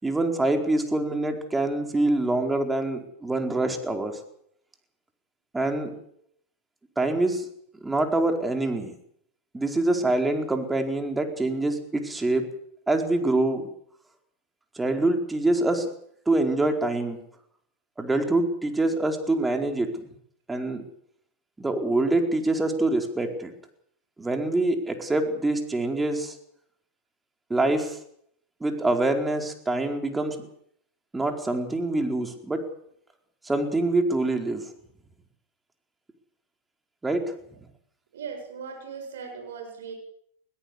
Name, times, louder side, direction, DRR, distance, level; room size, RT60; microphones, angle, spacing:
voice 1, 0.0-4.2 5.5-5.9 7.0-7.5 7.8-8.9 9.5-12.4 12.9-13.7 14.8-15.9 16.3-17.2 18.0-19.9 20.5-20.8 21.6-23.5 24.2-26.3 27.5-28.0 28.6-30.4 31.1-32.7 33.4-34.7 37.0-37.2, right 2 dB, 10° right, 5 dB, 4.6 m, -25 dB
voice 2, 38.1-39.9, right 6 dB, 75° right, 3 dB, 7.9 m, -38 dB
21.5 x 17.5 x 8.3 m, 0.69 s
hypercardioid pair, 100°, 0 cm